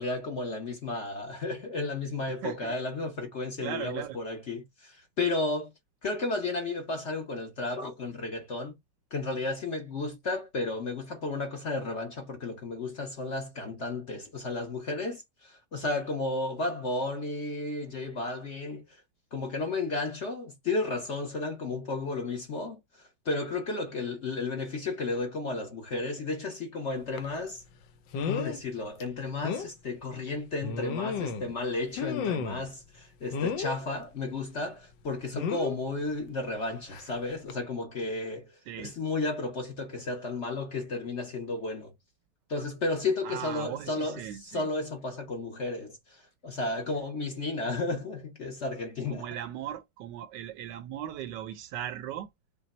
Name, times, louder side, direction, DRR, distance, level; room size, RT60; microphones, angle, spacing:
voice 1, 0.0-5.7 6.0-8.8 9.1-18.8 19.3-27.6 28.2-38.5 38.8-41.9 42.5-49.2, left 3 dB, 45° left, 1.0 m, -33 dB
voice 2, 2.3-2.8 3.6-4.2 38.7-38.9 43.2-44.7 46.9-47.0 49.1-52.3, right 11 dB, 75° right, 1.1 m, -38 dB
sound 1, 27.2-27.3 28.1-28.6 29.0-29.1 29.4-29.7 30.6-31.5 32.0-32.7 33.3-33.8 35.3-35.8 36.9-37.1 37.5-37.6, left 6 dB, 75° left, 1.4 m, -32 dB
5.8 x 2.2 x 4.1 m
omnidirectional pair, 2.1 m